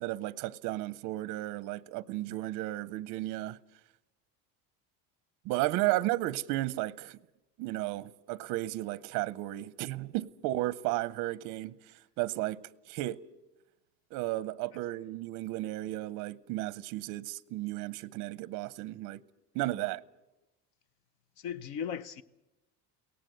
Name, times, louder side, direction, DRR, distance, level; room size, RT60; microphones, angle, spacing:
voice 1, 0.0-3.6 5.4-7.2 7.6-13.2 14.1-19.2 19.5-20.0, right 17 dB, 55° right, 0.7 m, -34 dB
voice 2, 21.4-22.2, left 8 dB, 50° left, 0.8 m, -39 dB
23.0 x 18.0 x 7.9 m
cardioid pair, 180°, 39 cm